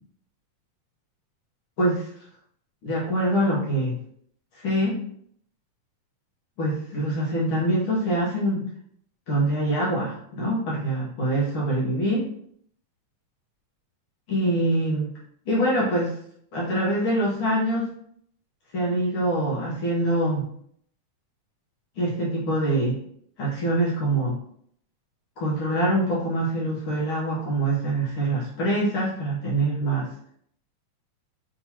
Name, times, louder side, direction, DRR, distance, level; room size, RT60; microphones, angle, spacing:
voice 1, 2.8-4.0 4.5-5.0 6.6-8.6 9.3-12.3 14.3-15.1 15.5-16.1 16.5-17.9 18.7-20.5 22.0-23.0 23.4-24.4 25.4-30.1, right 1 dB, 85° left, -6 dB, 1.2 m, -24 dB
6.2 x 2.9 x 2.8 m, 0.67 s
omnidirectional pair, 3.9 m